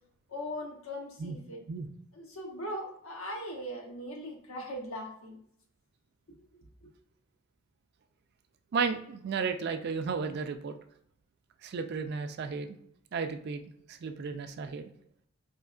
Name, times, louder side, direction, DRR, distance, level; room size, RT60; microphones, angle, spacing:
voice 1, 0.3-1.6 2.1-5.4 6.5-6.9, equal, 70° left, 1 dB, 0.9 m, -40 dB
voice 2, 8.7-10.8 11.6-12.8 13.1-13.6 13.9-14.9, right 5 dB, 50° right, 8 dB, 0.3 m, -33 dB
4.4 x 2.9 x 2.4 m, 0.68 s
head